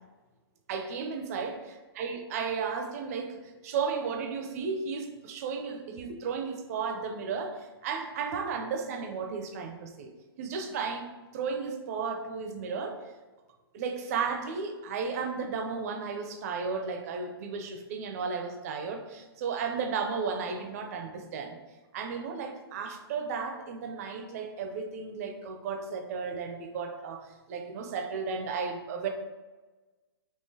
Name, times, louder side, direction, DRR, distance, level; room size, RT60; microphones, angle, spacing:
voice 1, 0.7-1.6 2.0-10.1 10.4-11.1 11.3-13.0 13.7-21.6 21.9-29.1, right 5 dB, 35° right, 4 dB, 0.4 m, -34 dB
3.7 x 2.9 x 2.7 m, 1.2 s
hypercardioid pair, 150°, 13 cm